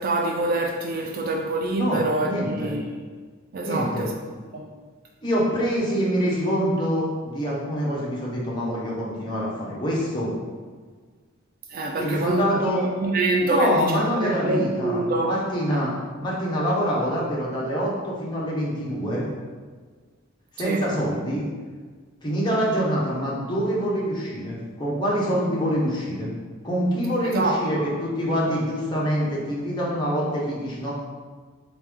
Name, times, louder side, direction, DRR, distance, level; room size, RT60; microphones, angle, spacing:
voice 1, 0.0-2.9 3.5-4.1 4.5-4.7 11.7-12.4 12.8-15.4 15.7-15.8 20.6-20.9 27.3-27.9 28.5-28.6, right 2 dB, 45° right, 2 dB, 0.3 m, -25 dB
voice 2, 1.7-2.7 3.6-4.1 5.2-10.3 12.0-12.8 13.4-15.9 16.2-19.2 20.6-21.5 22.2-26.3 26.6-30.9, equal, 20° left, -6 dB, 0.9 m, -25 dB
3.6 x 3.3 x 3.4 m, 1.5 s
head